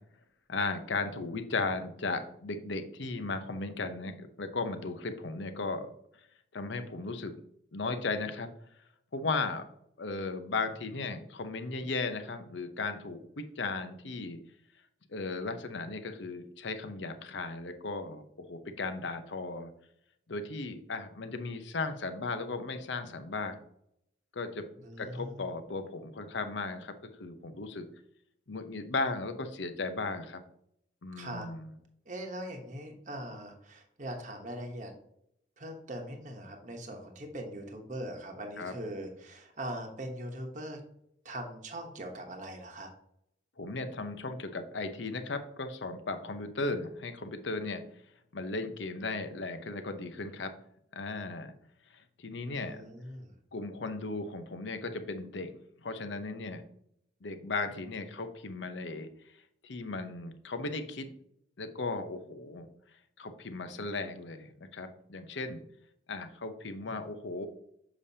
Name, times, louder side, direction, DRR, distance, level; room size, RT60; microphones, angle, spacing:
voice 1, 0.5-5.9 6.5-7.3 7.7-8.5 9.1-9.7 10.0-14.4 15.1-19.7 20.3-23.6 24.3-24.7 25.0-26.9 27.2-27.9 28.5-30.4 31.0-31.7 38.6-38.7 43.6-47.8 48.3-50.5 50.9-51.5 51.9-52.8 53.5-56.6 57.2-59.1 59.6-61.1 61.6-62.7 63.2-65.6 66.1-67.5, left 3 dB, 80° left, 8 dB, 0.8 m, -36 dB
voice 2, 24.8-25.4 31.2-31.5 32.0-34.9 35.6-40.8 41.2-42.9 52.5-53.3 66.9-67.0, right 1 dB, 40° right, 2 dB, 1.0 m, -41 dB
7.0 x 5.1 x 2.8 m, 0.72 s
head